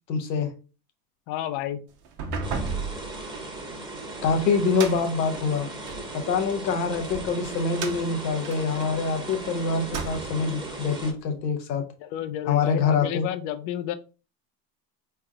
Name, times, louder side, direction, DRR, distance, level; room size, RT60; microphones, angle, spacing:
voice 1, 0.1-0.5 4.2-5.7 6.1-11.8 12.5-13.3, left 5 dB, 85° left, 6 dB, 0.9 m, -25 dB
voice 2, 1.3-1.8 12.0-13.9, left 11 dB, 55° left, 12 dB, 0.6 m, -31 dB
sound 1, 2.0-6.1 6.7-9.4 9.8-10.5, right 4 dB, 65° right, 1.1 m, -35 dB
sound 2, 2.4-11.1, right 2 dB, 10° right, 1.1 m, -37 dB
3.5 x 3.3 x 2.2 m, 0.34 s
hypercardioid pair, 75°, 49 cm